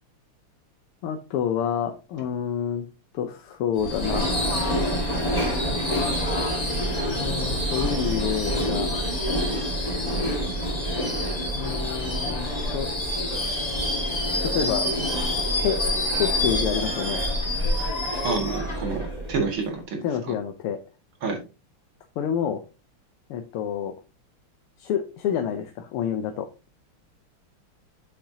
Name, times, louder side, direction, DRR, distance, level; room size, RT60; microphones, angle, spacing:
voice 1, 1.0-2.9 3.1-4.3 7.2-8.9 11.5-12.9 14.4-14.9 15.6-15.8 16.2-17.2 18.5-18.6 20.0-20.8 22.2-22.6 23.3-23.9 24.8-26.5, left 8 dB, 90° left, 5 dB, 1.7 m, -28 dB
Subway metro underground / Screech, 3.8-19.7, left 1 dB, 20° left, 1.8 m, -26 dB
voice 2, 18.2-20.0 20.3-20.4 21.2-21.4, right 4 dB, 70° right, 2 dB, 2.8 m, -28 dB
8.0 x 6.7 x 2.8 m, 0.30 s
omnidirectional pair, 2.4 m